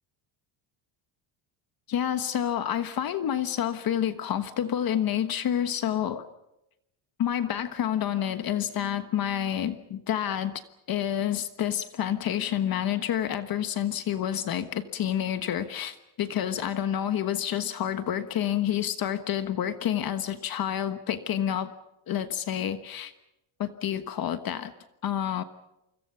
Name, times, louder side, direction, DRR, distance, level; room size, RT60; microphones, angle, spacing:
voice 1, 1.9-6.2 7.2-10.5 10.9-21.7 22.1-23.1 23.6-24.7 25.0-25.4, left 10 dB, 45° left, 10 dB, 1.4 m, -28 dB
28.5 x 25.0 x 5.7 m, 0.88 s
cardioid pair, 155°, 50 cm